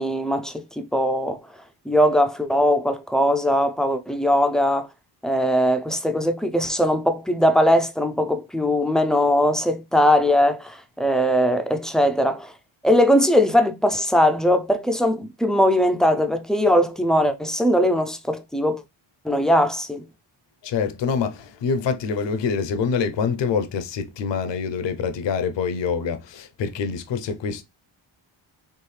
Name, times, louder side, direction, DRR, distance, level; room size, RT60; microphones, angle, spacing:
voice 1, 0.0-1.4 1.9-4.9 5.2-12.5 12.8-18.8 19.2-20.0, equal, ahead, 0.3 m, -20 dB
voice 2, 20.6-27.6, left 6 dB, 60° left, 0.7 m, -25 dB
4.6 x 3.1 x 3.2 m
wide cardioid pair, 145°, 49 cm